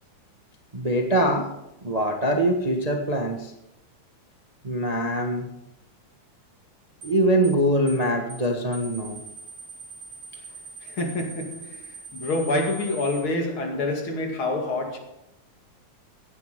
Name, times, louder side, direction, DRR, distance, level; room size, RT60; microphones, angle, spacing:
voice 1, 0.7-1.5 1.8-3.5 4.6-5.5 7.0-9.2, right 1 dB, 65° right, 0.3 m, -23 dB
sound 1, 7.0-7.2 7.4-7.6 7.9-8.0 8.3-8.5 8.7-13.2, right 4 dB, 40° right, 2.9 m, -42 dB
voice 2, 10.8-15.0, left 2 dB, 45° left, 2.9 m, -27 dB
17.0 x 10.0 x 5.2 m
omnidirectional pair, 3.5 m